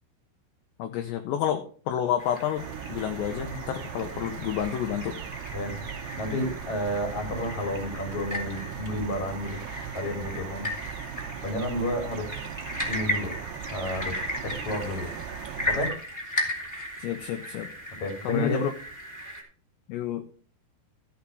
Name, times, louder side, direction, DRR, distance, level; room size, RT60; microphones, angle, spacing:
voice 1, 0.8-5.2 17.0-17.7 18.2-18.7 19.9-20.2, left 10 dB, 80° left, 6 dB, 2.6 m, -30 dB
sound 1, 2.2-19.4, left 1 dB, 10° left, 1.0 m, -36 dB
sound 2, 2.6-15.9, right 9 dB, 85° right, 2.3 m, -38 dB
voice 2, 6.2-9.6 9.9-10.7 11.4-12.3 12.8-13.3 13.7-14.2 14.4-15.1 15.7-15.9 18.0-18.6, left 1 dB, 35° left, 4 dB, 2.7 m, -31 dB
13.5 x 6.1 x 5.5 m, 0.42 s
omnidirectional pair, 5.9 m